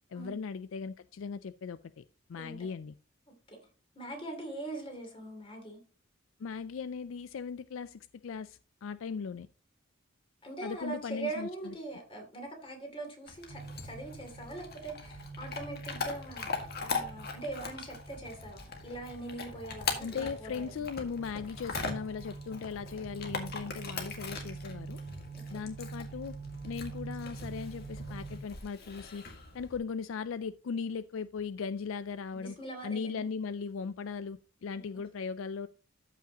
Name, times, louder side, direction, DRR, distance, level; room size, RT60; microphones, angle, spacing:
voice 1, 0.1-2.0 2.3-2.9 6.4-9.5 10.6-11.7 20.0-25.0 25.5-26.4 26.7-29.2 29.5-32.5 32.8-35.7, left 5 dB, 70° left, 0.4 m, -38 dB
voice 2, 2.3-2.7 3.3-3.6 3.9-5.8 10.4-20.9 25.3-25.6 32.3-33.2 34.9-35.0, right 2 dB, 25° left, 2.8 m, -42 dB
Chewing mastication / Dog, 13.3-29.8, left 4 dB, 50° left, 1.9 m, -41 dB
sound 1, 13.5-28.4, right 3 dB, 45° right, 2.0 m, -46 dB
13.5 x 5.8 x 2.9 m
head